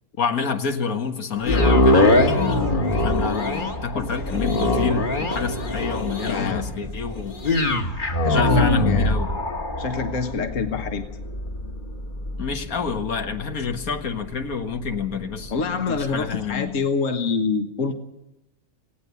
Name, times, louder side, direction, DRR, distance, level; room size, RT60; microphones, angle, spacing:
voice 1, 0.2-2.7 2.9-7.4 8.3-9.3 12.4-16.8, left 5 dB, 85° left, 6 dB, 2.0 m, -28 dB
sound 1, 1.4-15.6 16.1-16.2, left 1 dB, 35° left, 1.8 m, -23 dB
voice 2, 3.9-4.6 6.3-6.9 8.2-9.1 9.8-11.1 15.5-18.0, left 5 dB, 65° left, 7 dB, 1.7 m, -26 dB
18.5 x 17.5 x 8.3 m, 0.85 s
omnidirectional pair, 1.5 m